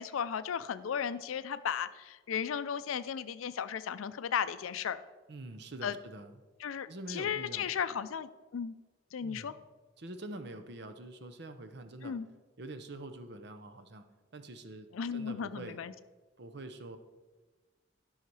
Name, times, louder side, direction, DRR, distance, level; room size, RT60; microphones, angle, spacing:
voice 1, 0.0-5.0 5.8-5.9 6.6-8.7 9.1-9.5 12.0-12.3 14.9-15.9, left 7 dB, 85° left, 13 dB, 0.4 m, -35 dB
voice 2, 5.3-6.3 6.9-7.7 9.2-9.5 10.0-12.1 12.6-14.0 14.3-15.8 16.4-17.0, right 2 dB, 55° right, 8 dB, 0.8 m, -45 dB
12.0 x 5.7 x 4.7 m, 1.3 s
head